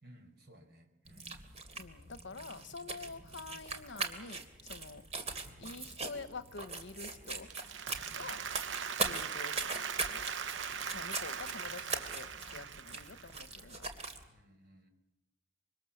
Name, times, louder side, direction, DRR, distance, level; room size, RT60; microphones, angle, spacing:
voice 1, 0.0-1.3 5.4-5.7 7.8-8.2 10.7-11.2 14.2-14.9, equal, 60° right, 4.8 m, -59 dB
sound 1, 1.0-14.2, right 3 dB, 35° right, 2.8 m, -41 dB
voice 2, 1.7-5.1 5.6-7.5 8.1-8.4 9.0-10.2 10.9-13.9, left 4 dB, 70° left, 1.1 m, -47 dB
Applause, 7.3-13.5, right 7 dB, 80° right, 0.9 m, -40 dB
26.0 x 24.5 x 7.2 m
head